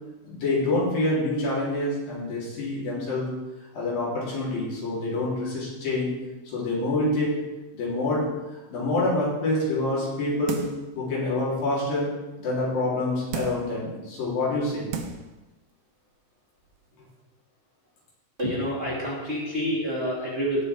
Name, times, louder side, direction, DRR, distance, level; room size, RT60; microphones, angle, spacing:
voice 1, 0.3-3.3 3.7-6.1 6.5-7.4 7.7-10.6 11.0-12.1 12.4-14.9, left 2 dB, 75° left, -6 dB, 5.4 m, -26 dB
sound 1, 10.5-10.9 11.4-11.5 13.3-13.8 14.5-14.6 14.9-15.3 15.7-15.8, right 5 dB, 90° right, 1.3 m, -34 dB
voice 2, 18.4-20.6, equal, 20° right, -7 dB, 2.8 m, -28 dB
17.5 x 6.1 x 4.5 m, 1.1 s
omnidirectional pair, 4.1 m